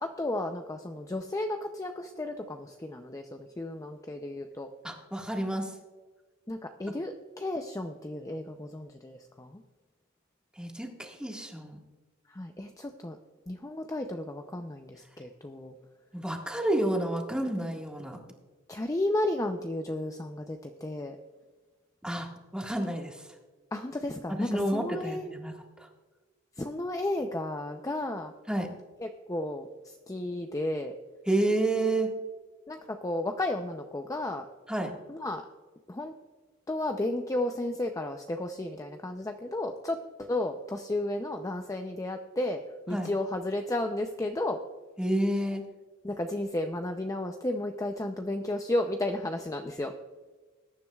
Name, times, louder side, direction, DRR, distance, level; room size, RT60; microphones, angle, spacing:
voice 1, 0.0-4.7 6.5-9.6 12.3-13.2 13.5-15.7 18.7-21.2 23.7-25.3 26.6-28.3 29.0-30.9 32.7-34.4 35.1-35.4 35.9-36.1 36.7-42.6 42.9-44.6 46.0-49.9, left 1 dB, 15° left, 5 dB, 0.5 m, -33 dB
voice 2, 4.8-5.7 10.6-11.8 16.1-18.2 22.0-23.3 24.3-25.5 28.5-28.7 31.2-32.1 34.7-34.9 42.9-43.1 45.0-45.6, right 1 dB, 5° right, 0 dB, 1.6 m, -30 dB
21.0 x 10.0 x 2.3 m, 1.3 s
head